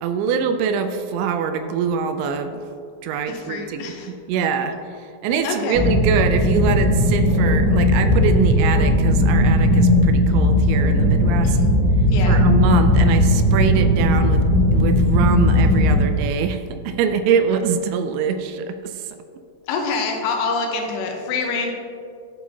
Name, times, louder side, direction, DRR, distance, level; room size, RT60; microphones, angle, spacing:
voice 1, 0.0-2.6 3.0-4.7 5.2-11.6 12.2-14.4 14.7-19.0, right 6 dB, 85° right, 8 dB, 2.8 m, -24 dB
voice 2, 3.3-4.1 5.4-5.8 11.4-11.7 12.1-12.4 19.7-21.7, left 4 dB, 75° left, 2 dB, 2.8 m, -26 dB
sound 1, 5.7-15.9, left 1 dB, 50° left, 2.7 m, -17 dB
13.0 x 6.5 x 2.7 m, 2.3 s
omnidirectional pair, 5.3 m